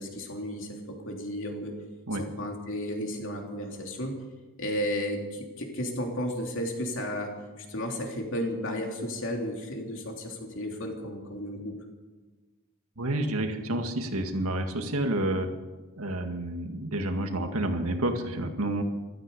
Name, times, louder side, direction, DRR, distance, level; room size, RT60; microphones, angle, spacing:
voice 1, 0.0-1.7 2.2-4.2 4.6-11.8, equal, 60° left, 1 dB, 3.2 m, -33 dB
voice 2, 13.0-15.5 16.0-18.8, right 1 dB, 85° right, 5 dB, 1.9 m, -29 dB
14.5 x 13.5 x 6.9 m, 1.3 s
head